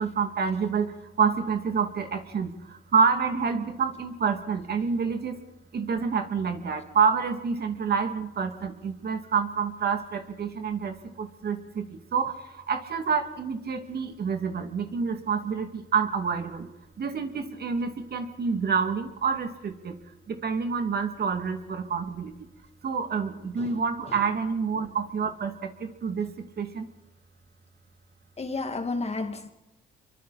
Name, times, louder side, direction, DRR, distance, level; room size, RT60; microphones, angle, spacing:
voice 1, 0.0-5.4 5.7-16.7 17.0-20.0 20.3-22.3 22.8-26.9, right 6 dB, 55° right, 2.5 m, -28 dB
voice 2, 28.4-29.5, left 3 dB, 30° left, 2.4 m, -32 dB
26.0 x 24.0 x 4.2 m
cardioid pair, 90°, 20 cm